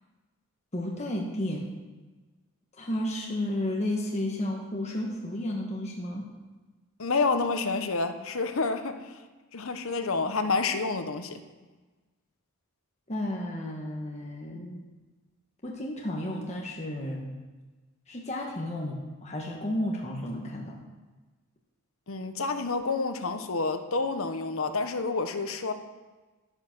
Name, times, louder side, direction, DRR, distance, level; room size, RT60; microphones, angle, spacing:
voice 1, 0.7-1.7 2.7-6.3 13.1-14.8 15.6-17.4 18.1-20.8, left 1 dB, 30° left, -1 dB, 1.3 m, -32 dB
voice 2, 7.0-9.2 9.5-11.4 22.1-25.7, left 3 dB, 65° left, 8 dB, 1.0 m, -29 dB
10.5 x 9.6 x 6.0 m, 1.3 s
head